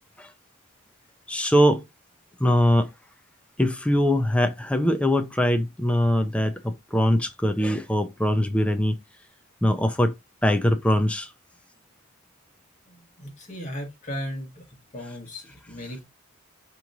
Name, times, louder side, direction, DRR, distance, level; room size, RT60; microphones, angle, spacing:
voice 1, 1.3-1.8 2.4-2.9 3.6-8.9 9.6-10.1 10.4-11.3, equal, 5° left, 0.4 m, -22 dB
voice 2, 12.8-14.6 14.9-16.0, equal, 35° left, 1.5 m, -36 dB
4.7 x 3.0 x 2.6 m
head